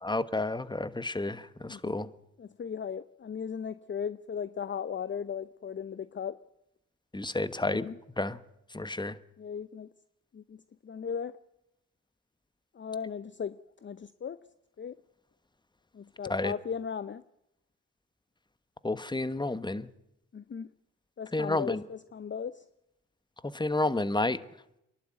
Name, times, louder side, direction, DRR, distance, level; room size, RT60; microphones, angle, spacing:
voice 1, 0.0-2.1 7.1-7.9 8.2-8.4 8.7-9.1 16.3-16.5 18.8-19.9 21.3-21.8 23.4-24.4, left 2 dB, 15° left, 1.3 m, -30 dB
voice 2, 1.7-2.0 2.4-6.4 7.6-8.0 9.4-9.9 10.3-11.4 12.7-14.4 14.8-15.0 15.9-17.2 20.3-20.7 21.2-22.6, left 7 dB, 35° left, 0.7 m, -37 dB
25.5 x 11.5 x 9.2 m
supercardioid pair, 45°, 34 cm